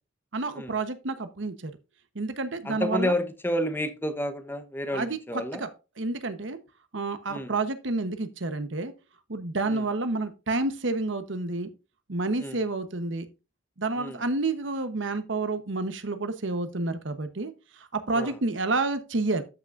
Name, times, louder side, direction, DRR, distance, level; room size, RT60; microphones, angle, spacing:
voice 1, 0.3-1.7 2.1-3.1 4.9-5.7 6.0-6.6 6.9-8.9 9.3-11.7 12.1-13.3 13.8-19.4, right 3 dB, 75° right, 1.1 m, -29 dB
voice 2, 2.6-5.6 7.3-7.5 9.7-9.8 12.4-12.6 14.0-14.2 18.1-18.3, left 1 dB, 10° left, 1.0 m, -30 dB
13.0 x 6.0 x 2.6 m
head